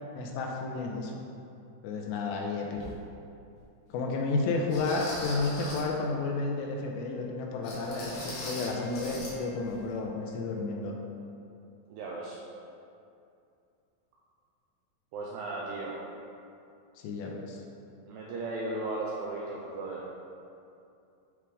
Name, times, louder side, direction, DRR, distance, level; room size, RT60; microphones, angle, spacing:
voice 1, 0.2-1.1 1.8-2.9 3.9-10.9 17.0-17.6, left 3 dB, 80° left, 0 dB, 2.6 m, -32 dB
sound 1, 2.8-2.9 3.6-3.7 4.7-6.0 7.6-9.4 9.6-9.8 10.2-10.3, left 1 dB, 65° left, 2.8 m, -40 dB
Wind instrument woodwind instrument, 6.5-11.4, left 6 dB, 65° right, 2.0 m, -47 dB
voice 2, 11.9-12.4 15.1-16.0 18.1-20.1, right 2 dB, 85° right, -4 dB, 2.4 m, -36 dB
10.0 x 3.6 x 4.9 m, 2.6 s
omnidirectional pair, 5.5 m